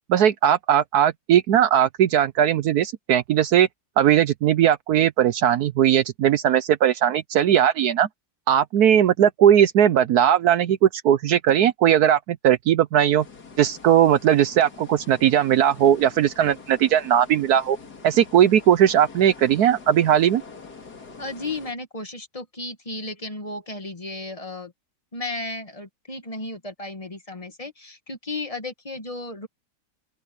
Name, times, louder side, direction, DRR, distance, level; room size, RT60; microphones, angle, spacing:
voice 1, 0.1-3.7 4.0-8.1 8.5-13.2 13.6-17.8 18.0-20.4, right 10 dB, 70° right, 1.1 m, -18 dB
sound 1, 13.2-21.7, left 4 dB, 65° left, 3.1 m, -45 dB
voice 2, 21.2-24.7 25.1-29.5, left 2 dB, 20° left, 1.6 m, -34 dB
open air
omnidirectional pair, 1.8 m